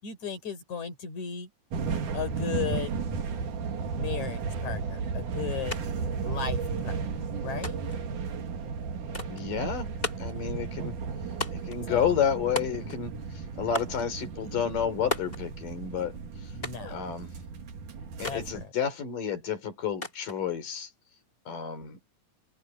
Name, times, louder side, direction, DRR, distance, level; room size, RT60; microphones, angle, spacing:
voice 1, 0.0-1.5 2.1-2.9 4.0-5.8 6.2-7.0 7.4-7.8 11.9-12.2 16.5-17.0 18.3-18.7, left 7 dB, 60° left, 5.7 m, -35 dB
sound 1, 1.7-18.6, right 5 dB, 70° right, 3.8 m, -34 dB
sound 2, 5.7-5.8 6.1-6.9 7.6-8.0 9.1-9.5 10.0-10.4 11.4-11.8 12.6-13.1 13.7-14.0 15.1-15.4 16.6-16.9 18.2-18.5 20.0-20.4, left 2 dB, 15° left, 2.3 m, -35 dB
voice 2, 9.3-9.9 10.2-11.0 11.5-13.1 13.6-16.2 16.8-17.3 18.2-20.9 21.5-22.0, left 8 dB, 85° left, 5.3 m, -30 dB
omnidirectional pair, 3.7 m